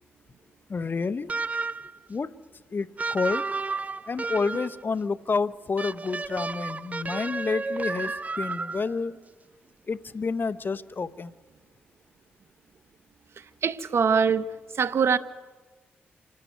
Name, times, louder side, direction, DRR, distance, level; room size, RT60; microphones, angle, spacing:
voice 1, 0.7-1.3 2.1-2.3 2.7-3.4 4.1-9.2 9.9-11.3, left 4 dB, 45° left, 15 dB, 0.9 m, -29 dB
sound 1, 1.3-2.0 3.0-4.8 5.8-9.0, right 3 dB, 30° right, 0.6 m, -32 dB
voice 2, 13.6-14.5 14.8-15.2, right 6 dB, 65° right, 14 dB, 1.0 m, -22 dB
26.5 x 13.5 x 9.4 m, 1.3 s
supercardioid pair, 50°, 5 cm